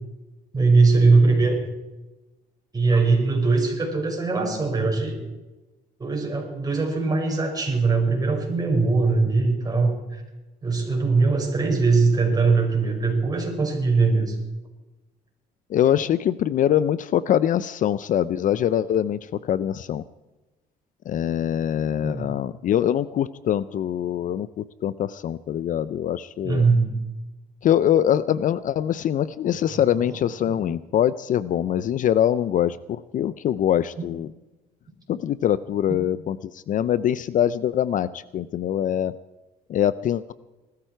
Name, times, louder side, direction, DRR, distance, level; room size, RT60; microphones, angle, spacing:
voice 1, 0.5-1.6 2.7-5.1 6.0-10.2 10.6-14.4 21.9-22.3 26.4-26.9 30.0-30.2, right 3 dB, 20° right, 1 dB, 5.5 m, -21 dB
voice 2, 15.7-20.0 21.1-26.7 27.6-34.3 35.1-39.1 39.7-40.3, left 10 dB, 50° left, 17 dB, 0.5 m, -23 dB
20.5 x 13.5 x 4.5 m, 1.1 s
cardioid pair, 110°, 17 cm